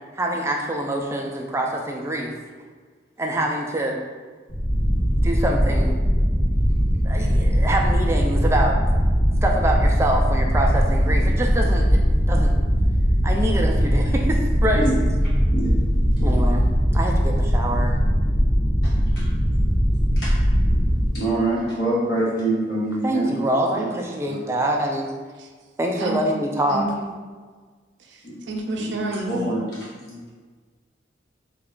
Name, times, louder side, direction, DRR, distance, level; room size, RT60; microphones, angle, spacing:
voice 1, 0.2-2.4 3.2-4.0 5.2-6.0 7.0-8.8 9.4-12.0 12.3-12.5 13.2-14.9 16.2-16.6 16.9-18.0 23.0-25.1 25.8-26.9, right 1 dB, 15° right, 0 dB, 0.3 m, -25 dB
sound 1, 4.5-21.1, equal, 25° left, 0.7 m, -20 dB
voice 2, 21.1-23.3 23.7-23.9 24.2-24.4 28.2-28.3 28.8-28.9 29.3-30.2, right 2 dB, 60° left, -8 dB, 0.9 m, -25 dB
voice 3, 26.7-27.1 28.5-29.4, right 2 dB, 75° right, 1 dB, 0.5 m, -28 dB
3.3 x 2.4 x 3.6 m, 1.5 s
head